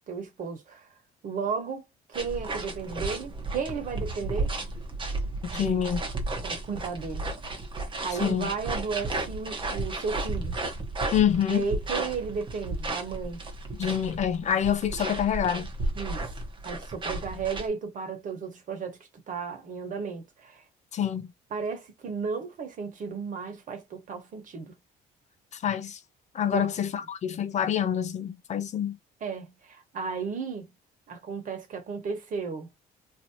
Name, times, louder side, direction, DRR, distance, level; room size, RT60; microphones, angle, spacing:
voice 1, 0.1-0.9 1.2-4.5 5.5-5.8 6.4-7.2 8.0-10.5 11.5-13.4 15.9-16.3 16.6-19.0 19.3-20.6 21.5-24.7 26.5-26.7 29.2-30.7 31.1-32.7, right 5 dB, 50° right, 1.4 m, -34 dB
sound 1, 2.1-17.7, right 2 dB, 30° right, 1.1 m, -33 dB
voice 2, 5.5-6.0 8.2-8.5 11.1-11.7 13.8-15.7 20.9-21.3 25.5-26.0 26.3-29.0, left 9 dB, 45° left, 0.6 m, -26 dB
2.9 x 2.8 x 2.8 m
cardioid pair, 110°, 17 cm